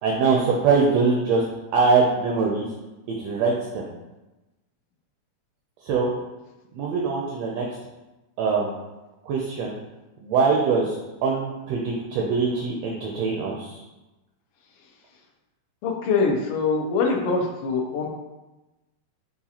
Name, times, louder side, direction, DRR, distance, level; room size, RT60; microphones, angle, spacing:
voice 1, 0.0-1.4 1.7-2.6 3.1-3.9 5.8-6.1 6.7-7.7 8.4-8.7 9.3-9.8 10.2-13.8, right 4 dB, 80° right, -2 dB, 1.5 m, -23 dB
voice 2, 15.8-18.1, left 4 dB, 90° left, 0 dB, 1.2 m, -23 dB
7.0 x 2.4 x 2.8 m, 1.1 s
omnidirectional pair, 3.4 m